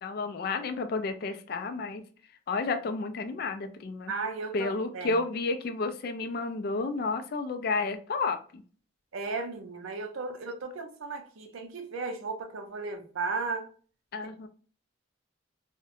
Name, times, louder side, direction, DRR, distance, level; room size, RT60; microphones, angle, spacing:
voice 1, 0.0-2.0 2.5-4.1 4.5-8.6 14.1-14.5, left 3 dB, 50° left, 0.3 m, -31 dB
voice 2, 4.1-5.2 9.1-13.7, right 4 dB, 85° right, 0.5 m, -35 dB
2.7 x 2.1 x 2.4 m
head